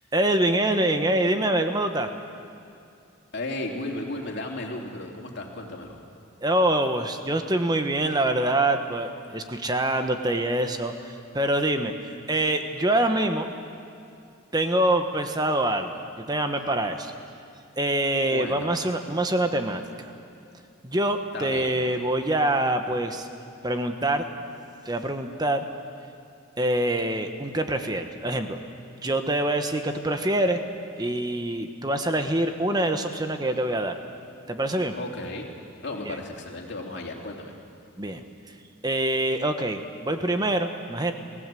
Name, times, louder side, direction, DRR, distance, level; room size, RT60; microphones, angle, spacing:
voice 1, 0.1-2.1 6.4-10.9 11.3-13.5 14.5-17.1 17.8-19.8 20.8-23.3 23.6-24.3 24.8-25.6 26.6-28.6 29.0-30.6 31.0-33.9 34.5-34.9 36.1-36.2 38.0-38.2 38.8-41.1, right 1 dB, 20° right, 6 dB, 1.2 m, -25 dB
voice 2, 3.3-6.0 18.3-18.8 21.3-21.7 35.0-35.5 35.8-37.5, left 2 dB, 55° left, 0 dB, 3.0 m, -34 dB
30.0 x 16.0 x 7.7 m, 2.6 s
head